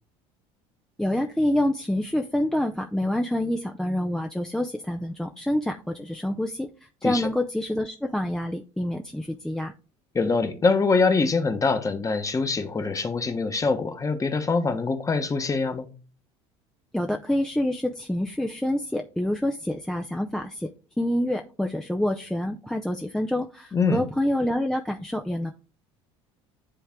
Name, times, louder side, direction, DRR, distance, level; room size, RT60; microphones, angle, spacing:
voice 1, 1.0-6.7 7.0-9.7 16.9-20.7 21.0-25.5, left 1 dB, 5° left, 0.5 m, -27 dB
voice 2, 10.1-15.9 23.7-24.0, left 4 dB, 20° left, 1.1 m, -24 dB
9.9 x 3.4 x 3.6 m
supercardioid pair, 85°, 15 cm